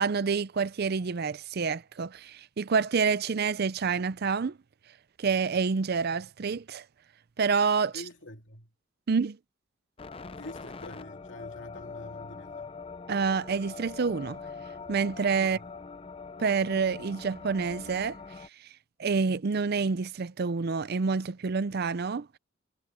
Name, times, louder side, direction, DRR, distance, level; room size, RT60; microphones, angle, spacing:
voice 1, 0.0-4.6 5.2-6.8 7.4-8.0 9.1-9.4 13.1-14.4 14.9-15.6 16.4-18.2 19.0-22.3, right 5 dB, 50° right, 0.5 m, -28 dB
voice 2, 7.9-8.7 10.3-12.8 15.4-15.7, left 1 dB, 65° left, 2.9 m, -46 dB
sound 1, 10.0-18.5, left 4 dB, 30° left, 0.6 m, -43 dB
head